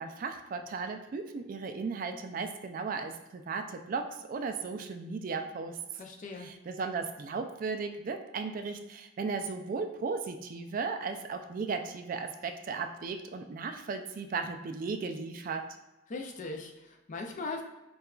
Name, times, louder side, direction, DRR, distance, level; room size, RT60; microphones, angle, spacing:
voice 1, 0.0-5.8 6.4-15.6, right 4 dB, 45° right, 6 dB, 0.3 m, -36 dB
voice 2, 6.0-6.5 16.1-17.6, left 3 dB, 40° left, 3 dB, 0.4 m, -39 dB
6.5 x 2.3 x 2.3 m, 1.0 s
head